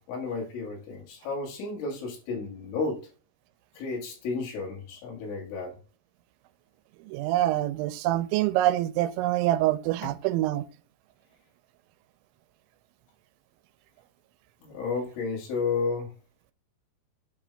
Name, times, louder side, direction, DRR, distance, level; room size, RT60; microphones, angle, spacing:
voice 1, 0.0-3.0 3.8-5.8 14.6-16.1, left 4 dB, 90° left, 4.4 m, -32 dB
voice 2, 7.0-10.7, right 14 dB, 90° right, 2.9 m, -25 dB
8.2 x 3.3 x 5.0 m
omnidirectional pair, 5.3 m